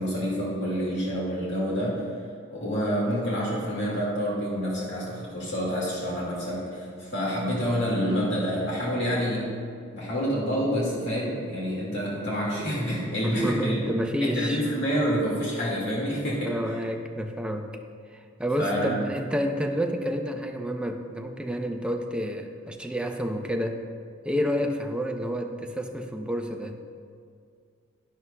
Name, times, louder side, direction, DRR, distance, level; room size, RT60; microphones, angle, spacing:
voice 1, 0.0-2.0 2.5-9.5 9.9-13.9 14.2-16.6 18.6-19.0, equal, 65° left, -5 dB, 2.0 m, -28 dB
voice 2, 13.2-14.6 16.4-17.7 18.1-23.8 24.2-26.8, equal, 5° right, 4 dB, 0.6 m, -29 dB
11.5 x 11.0 x 2.2 m, 2.2 s
head